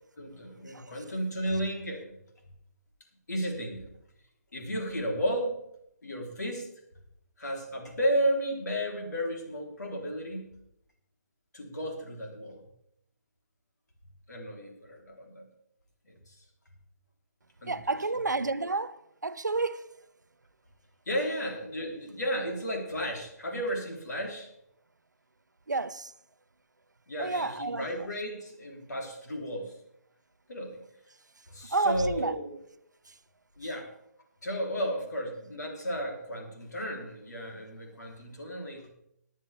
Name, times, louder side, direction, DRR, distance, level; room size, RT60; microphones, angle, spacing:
voice 1, 0.2-2.2 3.3-3.9 4.5-5.6 6.0-6.7 7.4-10.5 11.5-12.7 14.3-15.5 16.1-16.3 17.6-17.8 21.1-24.5 27.1-29.8 30.5-30.8 31.5-32.5 33.6-33.9 34.4-38.9, equal, 70° left, 3.8 m, -33 dB
voice 2, 17.7-19.9 25.7-26.1 27.2-27.9 31.7-32.4 33.1-33.2, right 3 dB, 90° right, 0.8 m, -30 dB
18.0 x 10.0 x 3.5 m
figure-of-eight pair, 145°, 9 cm